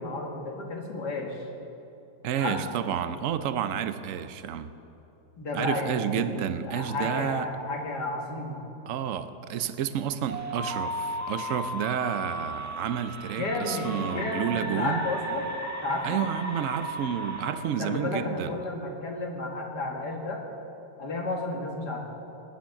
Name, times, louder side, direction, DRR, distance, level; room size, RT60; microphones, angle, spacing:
voice 1, 0.0-1.5 2.4-2.8 5.4-8.6 13.4-15.5 15.8-16.2 17.8-20.4 21.0-22.1, left 2 dB, 65° left, 1 dB, 2.4 m, -32 dB
voice 2, 2.2-4.7 5.5-7.5 8.9-15.1 16.0-18.6, right 9 dB, 65° right, 12 dB, 0.8 m, -30 dB
sound 1, 10.3-17.5, right 1 dB, 10° right, 1.4 m, -35 dB
18.5 x 10.5 x 5.9 m, 2.9 s
omnidirectional pair, 1.9 m